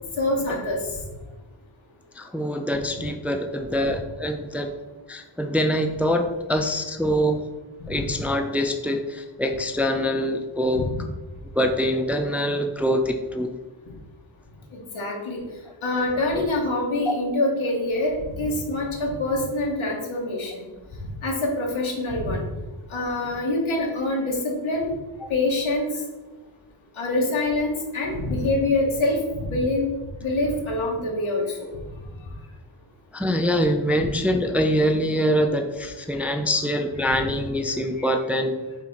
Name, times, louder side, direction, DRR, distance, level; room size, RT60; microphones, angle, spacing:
voice 1, 0.2-1.0 7.9-8.0 10.7-11.0 14.7-15.4 15.8-20.7 21.2-22.4 22.9-24.9 25.3-25.9 27.0-29.9 30.2-31.6 38.0-38.1, left 2 dB, 85° left, -2 dB, 2.0 m, -25 dB
voice 2, 2.2-4.7 5.1-7.4 7.9-10.9 11.5-13.5 16.3-16.4 17.1-17.2 25.2-25.3 33.1-38.6, equal, 5° right, 5 dB, 0.4 m, -24 dB
5.8 x 3.8 x 5.7 m, 1.2 s
wide cardioid pair, 125°, 46 cm